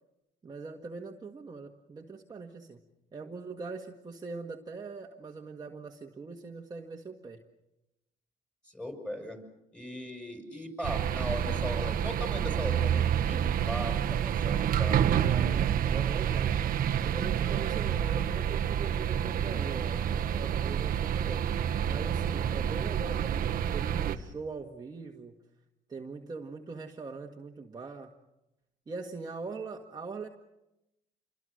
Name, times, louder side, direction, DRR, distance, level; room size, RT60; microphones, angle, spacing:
voice 1, 0.4-2.8 3.1-7.4 15.2-16.7 17.0-21.5 21.9-25.3 25.9-28.1 28.9-30.3, right 4 dB, 25° right, 1 dB, 1.7 m, -41 dB
voice 2, 8.6-9.4 9.7-15.5, left 1 dB, 5° left, 4 dB, 5.9 m, -39 dB
sound 1, 10.8-24.2, right 9 dB, 55° right, 1.2 m, -28 dB
28.0 x 22.5 x 6.5 m, 0.91 s
cardioid pair, 110°, 17 cm